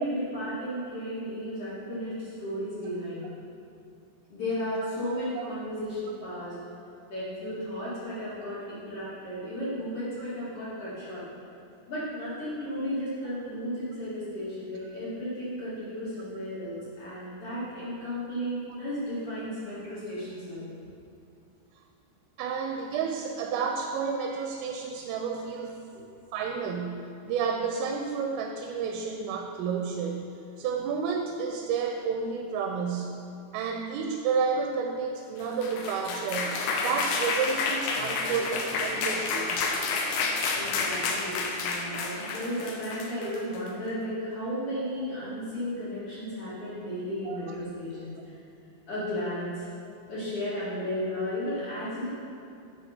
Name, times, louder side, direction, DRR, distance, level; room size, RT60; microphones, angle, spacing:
voice 1, 0.0-3.3 4.3-6.5 7.1-11.2 11.9-20.7 40.5-48.1 48.9-49.7 50.1-52.1, equal, 40° left, -11 dB, 2.2 m, -34 dB
voice 2, 22.4-25.8 26.3-33.2 33.5-39.6 47.3-47.4, right 5 dB, 85° right, 3 dB, 3.2 m, -31 dB
sound 1, 35.4-43.7, left 4 dB, 80° left, 3.2 m, -30 dB
9.3 x 5.2 x 5.9 m, 2.7 s
omnidirectional pair, 5.8 m